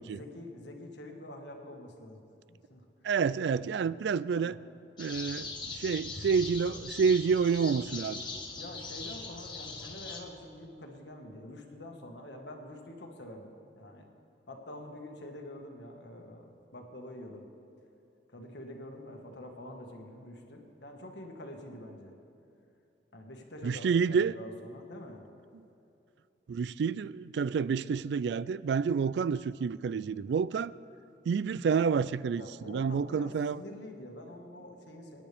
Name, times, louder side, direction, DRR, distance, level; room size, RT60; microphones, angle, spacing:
voice 1, 0.1-2.2 2.5-2.8 3.4-3.9 4.3-4.5 8.6-14.1 14.5-17.4 18.3-22.1 23.1-25.2 28.7-28.9 32.4-35.2, left 1 dB, 70° left, 2 dB, 1.7 m, -46 dB
voice 2, 3.0-4.6 5.0-8.2 23.6-24.4 26.5-30.7 31.3-33.6, right 6 dB, 70° right, 18 dB, 0.3 m, -29 dB
sound 1, 5.0-10.2, left 3 dB, 25° left, 1.3 m, -41 dB
24.5 x 10.0 x 3.5 m, 2.7 s
head